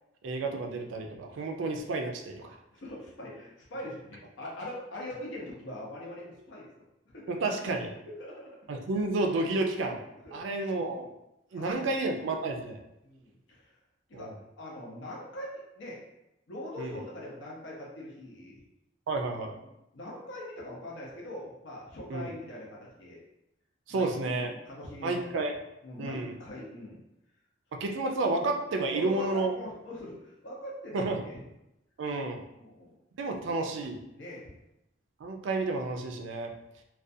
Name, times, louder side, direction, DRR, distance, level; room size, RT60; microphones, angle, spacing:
voice 1, 0.2-2.6 7.3-7.9 8.7-10.0 10.3-11.1 11.5-12.8 14.1-14.3 16.8-16.9 19.1-19.6 22.1-22.2 23.9-24.5 25.0-25.5 26.0-26.4 27.7-29.5 30.9-31.2 32.0-32.4 33.2-34.0 35.2-36.5, right 2 dB, 70° right, 3 dB, 0.4 m, -31 dB
voice 2, 2.7-6.7 7.1-7.4 8.0-8.5 10.2-10.4 11.5-12.0 13.0-13.8 14.1-16.0 16.5-18.6 19.6-23.2 23.9-24.1 24.5-25.4 25.8-27.0 27.7-27.8 28.9-31.4 32.5-32.9 34.1-34.5, left 1 dB, 70° left, -4 dB, 0.6 m, -42 dB
2.4 x 2.2 x 2.6 m, 0.88 s
head